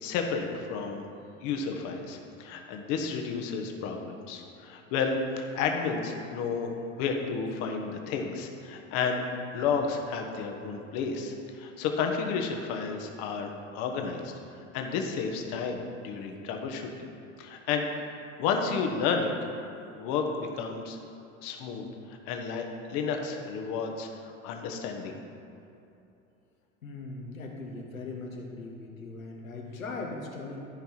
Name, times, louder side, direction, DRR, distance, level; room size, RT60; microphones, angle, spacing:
voice 1, 0.0-1.0 1.4-14.3 14.7-17.1 17.4-17.9 18.4-19.3 20.0-21.0 21.4-25.2, left 5 dB, 50° left, 3 dB, 1.3 m, -32 dB
voice 2, 26.8-30.7, left 3 dB, 80° left, 0 dB, 1.6 m, -39 dB
13.0 x 5.4 x 4.5 m, 2.8 s
figure-of-eight pair, 80°, 40 cm